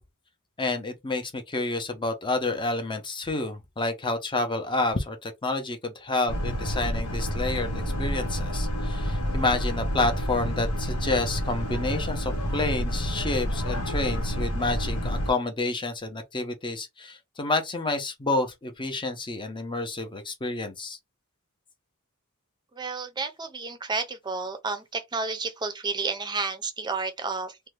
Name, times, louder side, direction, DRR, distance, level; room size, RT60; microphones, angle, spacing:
voice 1, 0.6-7.7 8.0-21.0, left 2 dB, 20° left, 0.6 m, -29 dB
Boat Water vehicle, 6.3-15.3, equal, 90° left, 1.0 m, -29 dB
voice 2, 22.7-27.7, right 4 dB, 20° right, 0.5 m, -31 dB
2.7 x 2.2 x 3.2 m
head